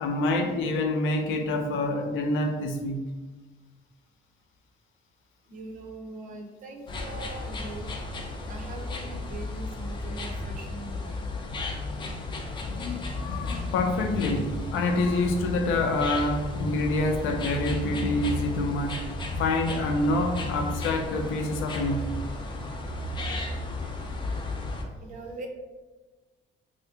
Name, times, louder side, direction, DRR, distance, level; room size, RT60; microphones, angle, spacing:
voice 1, 0.0-3.1 12.6-19.0 19.4-22.2, left 2 dB, 85° left, 4 dB, 0.5 m, -27 dB
voice 2, 5.5-7.9 8.5-11.2 25.0-25.5, right 3 dB, 40° right, 3 dB, 0.5 m, -41 dB
sound 1, 6.9-24.8, left 2 dB, 25° left, 0.4 m, -34 dB
2.8 x 2.5 x 3.4 m, 1.2 s
cardioid pair, 165°, 20 cm